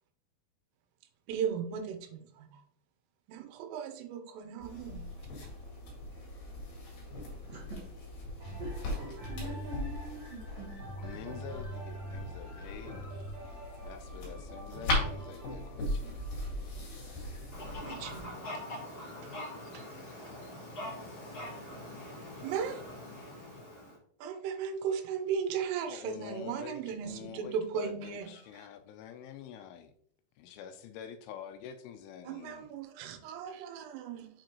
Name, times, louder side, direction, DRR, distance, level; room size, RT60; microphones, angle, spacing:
voice 1, 1.3-2.6 3.3-5.1 17.9-18.4 22.4-22.8 24.2-28.3 32.3-34.3, right 7 dB, 85° right, 6 dB, 3.4 m, -36 dB
sound 1, 4.6-18.2, left 1 dB, 55° left, 3.3 m, -39 dB
voice 2, 7.4-7.9 8.6-8.9 9.2-10.7, equal, 70° right, -3 dB, 2.2 m, -45 dB
sound 2, 8.4-18.2 18.8-18.9, right 2 dB, 45° right, 2.2 m, -46 dB
voice 3, 11.0-13.0 13.8-16.2 25.9-29.9 30.4-32.7, left 9 dB, 85° left, 8 dB, 2.9 m, -47 dB
Fowl, 17.5-24.0, left 1 dB, 40° left, 2.0 m, -43 dB
7.4 x 5.0 x 3.0 m, 0.63 s
omnidirectional pair, 5.7 m